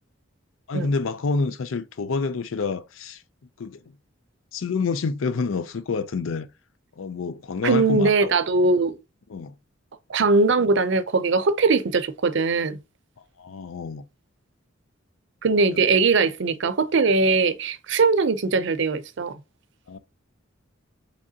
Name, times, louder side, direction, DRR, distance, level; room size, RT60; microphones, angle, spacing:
voice 1, 0.7-3.2 3.6-3.8 4.5-6.5 7.0-8.3 9.3-9.5 13.4-14.0 15.7-15.8 19.9-20.0, left 4 dB, 85° left, 0.5 m, -28 dB
voice 2, 7.6-8.9 10.1-12.8 15.4-19.4, right 4 dB, 65° right, 0.6 m, -21 dB
4.9 x 3.4 x 2.8 m
head